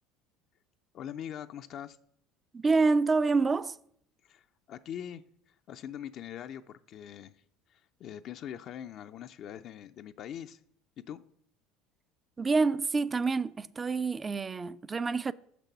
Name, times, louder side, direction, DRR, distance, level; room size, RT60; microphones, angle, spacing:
voice 1, 0.9-2.0 4.2-5.2 5.7-7.3 7.7-10.6 11.0-11.2, left 10 dB, 55° left, 0.3 m, -42 dB
voice 2, 2.5-3.8 12.4-15.3, right 4 dB, 25° right, 0.3 m, -27 dB
6.3 x 6.0 x 5.5 m
hypercardioid pair, 70°, 0 cm